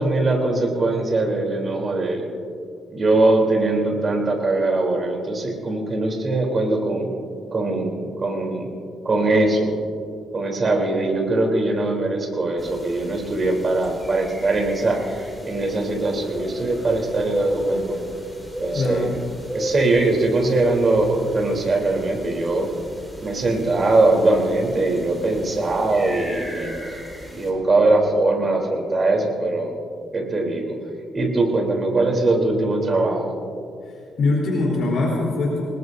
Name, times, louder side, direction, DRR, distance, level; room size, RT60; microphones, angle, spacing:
voice 1, 0.0-2.2 2.9-7.1 7.5-8.7 9.0-9.7 10.3-18.0 18.6-19.1 19.5-22.7 23.2-26.7 27.3-29.7 30.1-30.7 31.1-33.3, right 2 dB, 30° right, 1 dB, 3.5 m, -21 dB
sound 1, 12.6-27.5, equal, 5° left, 4.3 m, -34 dB
voice 2, 18.7-19.1 34.2-35.6, left 2 dB, 65° left, -3 dB, 3.7 m, -22 dB
26.5 x 20.0 x 2.7 m, 2.4 s
cardioid pair, 125°, 0 cm